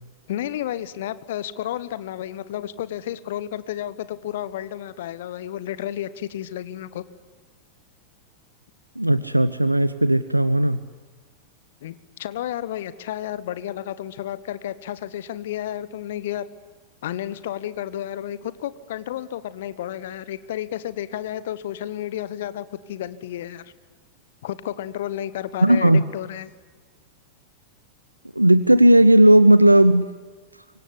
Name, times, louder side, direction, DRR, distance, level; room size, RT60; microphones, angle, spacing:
voice 1, 0.3-7.0 11.8-16.5 17.0-23.6 24.4-26.5, left 12 dB, 55° left, 15 dB, 1.3 m, -32 dB
voice 2, 9.0-10.8 25.6-26.0 28.4-30.1, right 1 dB, 85° right, 14 dB, 0.8 m, -15 dB
25.0 x 24.0 x 9.9 m, 1.4 s
figure-of-eight pair, 90°, 0 cm